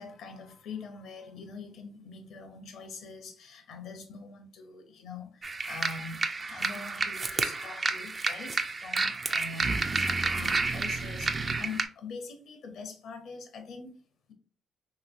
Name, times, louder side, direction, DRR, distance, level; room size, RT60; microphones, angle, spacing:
voice 1, 0.0-9.7 10.1-13.9, left 4 dB, 75° left, 0.7 m, -44 dB
sound 1, 5.4-11.8, right 3 dB, 35° right, 0.4 m, -30 dB
3.0 x 3.0 x 2.5 m
cardioid pair, 90°, 0 cm